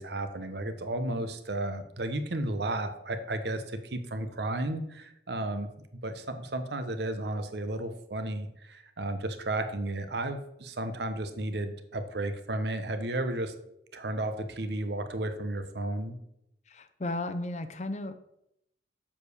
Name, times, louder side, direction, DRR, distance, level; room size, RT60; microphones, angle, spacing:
voice 1, 0.0-5.7 6.0-13.5 13.9-16.2, right 1 dB, 70° right, 9 dB, 0.9 m, -33 dB
voice 2, 16.7-18.2, left 2 dB, 40° left, 10 dB, 0.6 m, -34 dB
7.4 x 5.0 x 6.6 m, 0.79 s
head